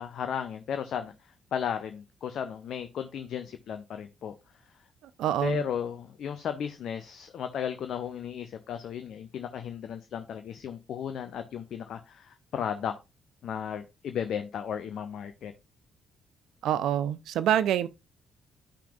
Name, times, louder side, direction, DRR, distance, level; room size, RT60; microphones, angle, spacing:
voice 1, 0.0-4.3 5.4-13.0 13.4-15.5, left 8 dB, 55° left, 0.6 m, -35 dB
voice 2, 5.2-5.6 16.6-17.9, right 10 dB, 65° right, 0.5 m, -26 dB
11.5 x 5.8 x 2.4 m
figure-of-eight pair, 40°, 0 cm